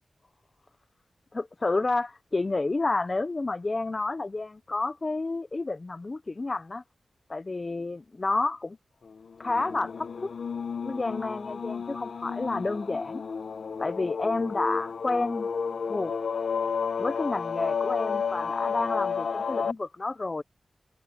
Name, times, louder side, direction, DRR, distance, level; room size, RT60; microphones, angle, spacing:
voice 1, 1.3-6.8 7.3-8.8 9.4-10.3 10.8-13.2 13.8-15.5 15.8-16.1 17.0-20.4, left 3 dB, 30° left, 0.6 m, -30 dB
sound 1, 9.4-19.7, left 6 dB, 70° left, 1.0 m, -32 dB
wide cardioid pair, 120°, 0 cm